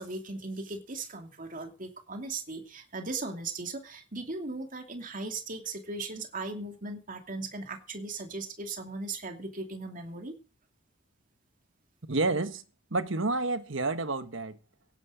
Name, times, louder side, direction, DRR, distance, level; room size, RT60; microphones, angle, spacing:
voice 1, 0.0-10.3, right 3 dB, 45° right, 2.7 m, -38 dB
voice 2, 12.1-12.6 12.9-14.6, right 2 dB, 70° right, 1.4 m, -29 dB
17.5 x 11.0 x 5.1 m
head